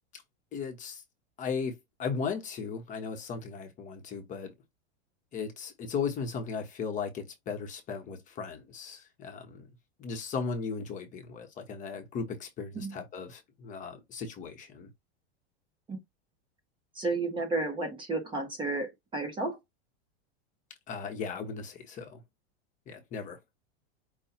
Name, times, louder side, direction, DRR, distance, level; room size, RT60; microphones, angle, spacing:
voice 1, 0.5-1.0 1.4-4.5 5.3-9.7 10.0-14.9 20.9-22.2 22.9-23.4, left 5 dB, 25° left, 1.0 m, -36 dB
voice 2, 16.9-19.6, right 3 dB, 15° right, 1.0 m, -32 dB
5.3 x 2.3 x 4.3 m
supercardioid pair, 155°, 33 cm